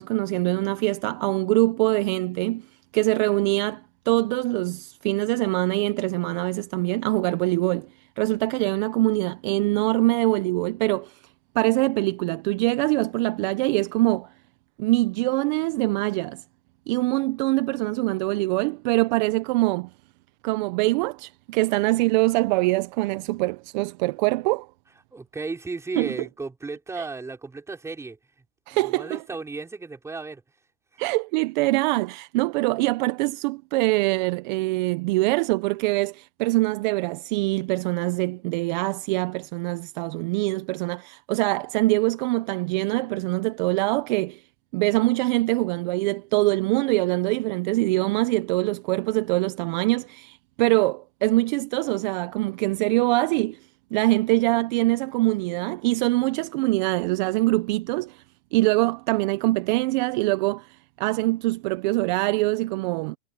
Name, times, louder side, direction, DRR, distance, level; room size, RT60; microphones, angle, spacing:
voice 1, 0.0-2.7 2.9-3.8 4.1-7.9 8.2-11.2 11.5-14.3 14.8-16.4 16.9-19.9 20.4-24.7 26.0-26.1 27.0-27.1 28.7-29.2 31.0-44.4 44.7-53.6 53.9-58.2 58.5-63.2, right 21 dB, 45° right, 0.9 m, -24 dB
voice 2, 25.1-28.2 28.7-30.4 30.9-31.0, right 3 dB, 10° right, 6.1 m, -34 dB
hypercardioid pair, 140°, 33 cm